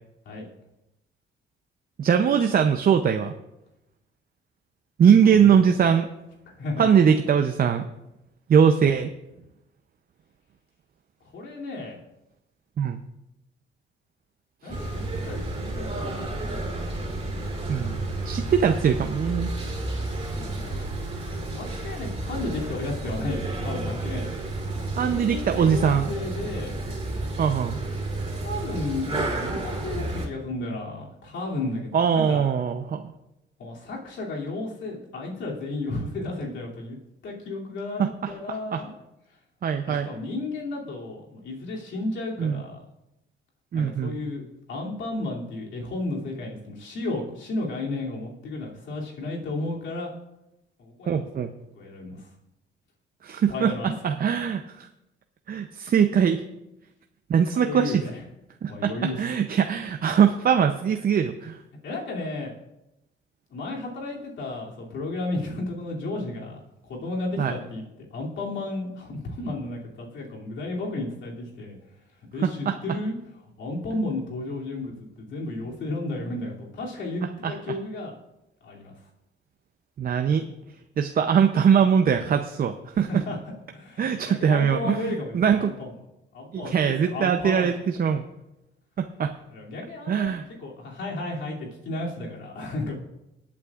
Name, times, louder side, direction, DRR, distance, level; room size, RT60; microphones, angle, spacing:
voice 1, 2.0-3.3 5.0-6.1 6.8-7.8 8.5-9.1 12.8-13.0 14.6-14.7 17.7-19.5 25.0-26.1 27.4-27.8 31.9-33.0 38.0-38.3 38.7-38.8 39.6-40.1 42.4-42.6 43.7-44.2 51.1-51.5 53.2-54.9 55.5-56.4 57.3-58.0 58.6-61.6 67.4-67.6 72.4-72.7 77.4-77.5 80.0-80.5 81.0-83.2 84.0-85.7 86.5-88.2 89.0-89.3 90.1-90.4, right 7 dB, 45° right, 6 dB, 0.6 m, -22 dB
voice 2, 6.5-6.9 11.2-12.0 14.6-16.3 20.1-20.9 21.3-24.3 25.0-26.7 28.2-32.4 33.6-37.0 37.2-38.9 39.9-42.8 43.7-50.1 50.8-51.3 51.7-52.3 53.5-54.1 57.5-58.2 58.7-59.2 61.8-62.5 63.5-71.8 72.3-73.2 73.4-78.1 78.6-78.9 83.0-83.4 83.7-86.0 86.3-87.7 89.5-92.9, left 2 dB, 70° left, -3 dB, 2.8 m, -33 dB
sound 1, 14.7-30.3, right 2 dB, 30° right, 3.4 m, -31 dB
21.0 x 8.6 x 2.5 m, 0.91 s
cardioid pair, 90°, 20 cm